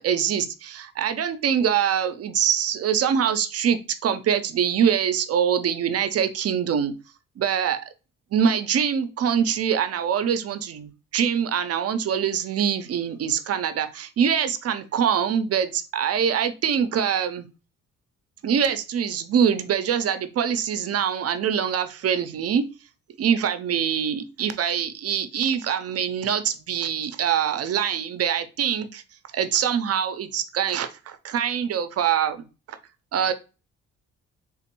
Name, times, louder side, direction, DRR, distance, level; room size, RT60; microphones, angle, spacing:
voice 1, 0.0-6.9 7.4-7.9 8.3-17.5 18.4-22.7 23.2-29.0 29.3-32.5 33.1-33.3, right 8 dB, 55° right, 0.6 m, -24 dB
3.6 x 2.5 x 2.9 m
cardioid pair, 90°, 30 cm